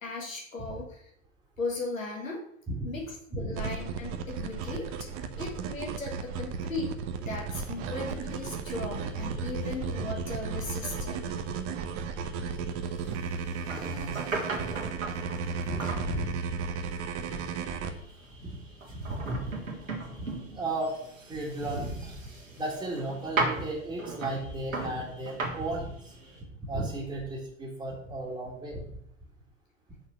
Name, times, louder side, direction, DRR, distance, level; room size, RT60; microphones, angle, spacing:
voice 1, 0.0-1.1 1.6-2.4 2.8-4.9 5.4-11.3, left 3 dB, 80° left, 0 dB, 1.7 m, -37 dB
sound 1, 3.5-17.9, right 5 dB, 35° right, 0.8 m, -34 dB
sound 2, 7.5-26.4, right 3 dB, 80° right, 1.8 m, -39 dB
voice 2, 13.7-14.2 14.6-14.7 15.7-16.6 17.3-17.4 18.4-18.5 18.9-19.5 20.2-20.3 20.5-21.0 21.3-22.2 22.5-26.1 26.7-28.8, right 2 dB, 10° right, -5 dB, 1.7 m, -35 dB
6.1 x 4.3 x 6.2 m, 0.72 s
figure-of-eight pair, 90°, 39 cm